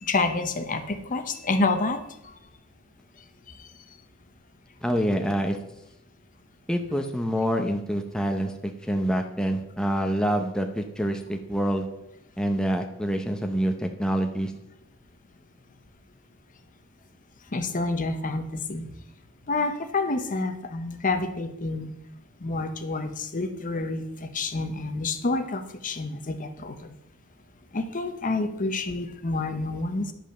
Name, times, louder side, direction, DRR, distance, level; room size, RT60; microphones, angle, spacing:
voice 1, 0.0-2.3 3.5-3.6 3.9-4.0 17.5-18.9 19.5-21.9 22.4-27.0 27.7-30.1, left 3 dB, 40° left, 8 dB, 0.8 m, -28 dB
voice 2, 4.8-5.6 6.7-11.9 12.4-14.5, equal, 5° left, 4 dB, 0.7 m, -26 dB
11.0 x 5.4 x 6.5 m, 0.82 s
head